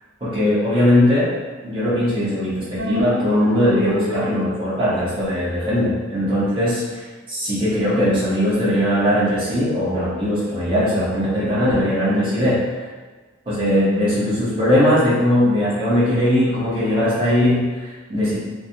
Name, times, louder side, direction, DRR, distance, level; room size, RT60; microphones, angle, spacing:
voice 1, 0.2-1.3 1.6-12.8 13.5-18.4, left 1 dB, 25° right, -10 dB, 1.0 m, -19 dB
sound 1, 2.8-4.7, equal, 75° right, 0.5 m, -27 dB
3.3 x 2.2 x 2.7 m, 1.3 s
head